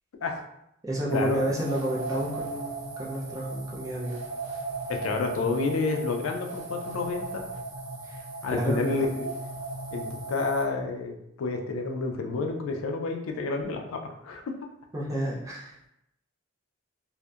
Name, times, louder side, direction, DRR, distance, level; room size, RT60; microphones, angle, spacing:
voice 1, 0.8-4.2 4.5-4.6 8.0-8.2 8.5-9.1 14.9-15.8, right 1 dB, 15° right, -4 dB, 0.4 m, -31 dB
sound 1, 1.1-10.6, right 2 dB, 70° right, 0.7 m, -37 dB
voice 2, 4.9-7.4 8.4-9.3 9.9-14.4, left 3 dB, 85° left, 3 dB, 0.4 m, -29 dB
2.7 x 2.0 x 2.3 m, 0.81 s
head